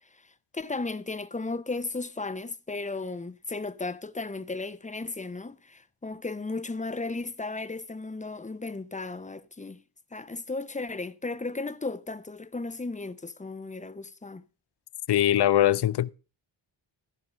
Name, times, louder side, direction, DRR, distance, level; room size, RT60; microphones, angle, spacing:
voice 1, 0.0-9.8 10.1-14.4, left 3 dB, 15° left, 0.6 m, -35 dB
voice 2, 15.1-16.1, left 12 dB, 60° left, 0.5 m, -22 dB
14.5 x 5.3 x 6.2 m
wide cardioid pair, 100°, 47 cm